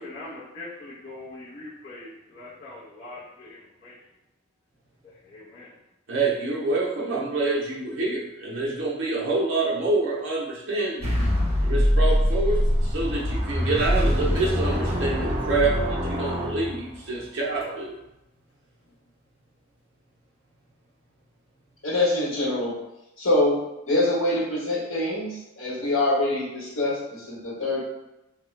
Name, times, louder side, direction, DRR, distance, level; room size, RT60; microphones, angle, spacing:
voice 1, 0.0-4.0 5.0-5.7, left 2 dB, 35° left, -12 dB, 0.6 m, -42 dB
voice 2, 6.1-11.3 11.6-18.0, right 3 dB, 60° right, -3 dB, 0.7 m, -27 dB
sound 1, 11.0-17.2, equal, 30° right, 0.8 m, -24 dB
sound 2, 14.2-16.7 17.1-17.2 17.6-17.8 18.9-19.0, left 4 dB, 90° left, 1.0 m, -41 dB
voice 3, 21.8-22.8 23.2-23.6 23.9-27.8, left 2 dB, 70° left, -6 dB, 1.1 m, -24 dB
2.9 x 2.2 x 3.1 m, 0.92 s
head